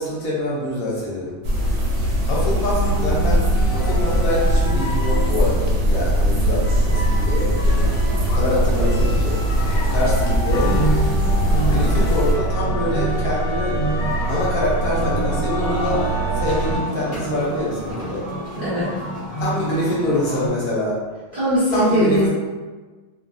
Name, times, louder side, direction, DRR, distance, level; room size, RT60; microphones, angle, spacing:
voice 1, 0.0-1.4 2.2-7.8 8.2-9.4 9.8-10.9 11.7-13.7 14.3-16.1 16.3-18.2 19.4-21.0 21.7-22.3, left 1 dB, 60° left, -6 dB, 1.0 m, -25 dB
sound 1, 1.4-12.3, equal, 75° right, 1.3 m, -20 dB
sound 2, 2.8-16.8, right 2 dB, 90° left, 1.3 m, -25 dB
sound 3, 7.8-20.5, right 2 dB, 45° left, 0.6 m, -29 dB
voice 2, 18.6-18.9 21.3-22.3, equal, 55° right, -12 dB, 0.5 m, -20 dB
2.9 x 2.4 x 2.5 m, 1.3 s
omnidirectional pair, 1.9 m